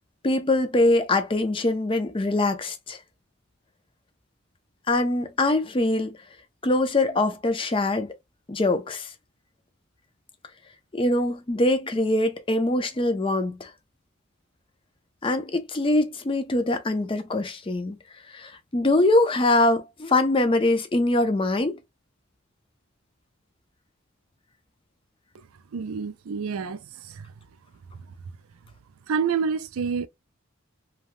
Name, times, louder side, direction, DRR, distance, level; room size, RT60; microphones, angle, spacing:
voice 1, 0.2-3.0 4.9-6.2 6.6-8.1 8.5-9.1 10.9-13.7 15.2-18.0 18.3-21.8, left 2 dB, 25° left, 0.5 m, -23 dB
voice 2, 25.7-27.3 27.9-28.1 29.1-30.1, right 6 dB, 90° right, 0.4 m, -28 dB
3.2 x 2.3 x 2.5 m
head